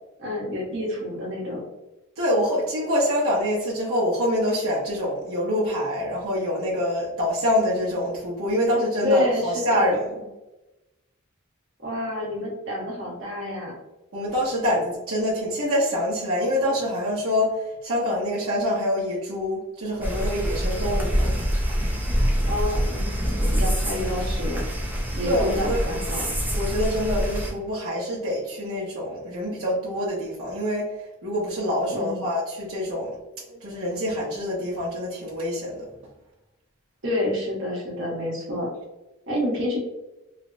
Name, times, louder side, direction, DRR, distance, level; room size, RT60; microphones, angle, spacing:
voice 1, 0.2-1.6 9.0-10.0 11.8-13.7 22.5-24.7 25.1-26.3 31.9-32.2 37.0-38.7 39.3-39.8, left 1 dB, 60° right, -4 dB, 1.1 m, -28 dB
voice 2, 2.2-10.2 14.1-21.3 25.2-25.9 26.5-30.9 31.2-33.1 33.5-35.9, equal, 80° right, -6 dB, 0.7 m, -25 dB
sound 1, 20.0-27.5, equal, 10° right, 0.4 m, -25 dB
3.2 x 2.0 x 2.5 m, 0.99 s
head